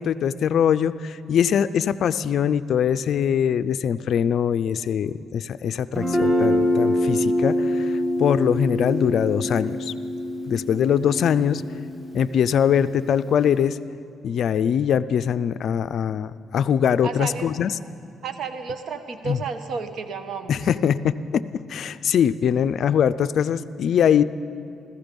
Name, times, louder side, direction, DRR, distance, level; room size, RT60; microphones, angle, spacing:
voice 1, 0.0-9.9 10.5-11.6 12.1-13.8 14.2-17.7 19.2-19.4 20.5-21.4 21.7-24.2, left 8 dB, 65° left, 14 dB, 0.4 m, -22 dB
Guitar, 5.9-13.6, left 1 dB, 10° right, 2.0 m, -25 dB
voice 2, 17.0-17.5 18.2-20.6, right 5 dB, 65° right, 9 dB, 1.1 m, -32 dB
15.5 x 14.5 x 5.3 m, 2.5 s
cardioid pair, 90°, 0 cm